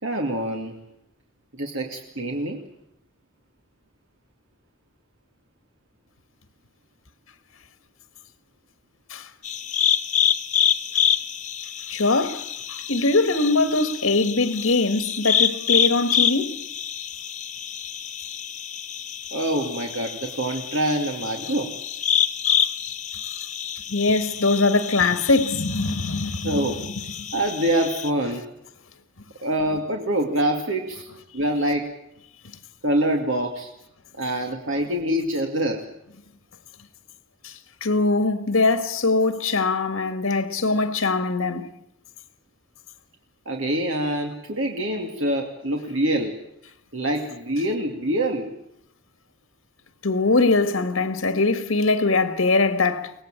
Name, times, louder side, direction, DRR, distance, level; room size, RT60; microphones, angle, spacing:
voice 1, 0.0-0.8 1.5-2.6 19.3-21.7 26.4-26.8 27.3-28.5 29.4-31.1 31.3-31.9 32.8-33.7 34.2-35.8 43.5-46.4 46.9-48.5, right 1 dB, 70° right, 2.5 m, -25 dB
sound 1, 9.4-28.1, left 8 dB, 35° left, 0.9 m, -27 dB
voice 2, 11.9-12.4 12.7-16.6 23.9-26.7 37.8-41.7 50.0-53.1, left 3 dB, 85° left, 1.7 m, -22 dB
24.0 x 18.5 x 9.0 m
head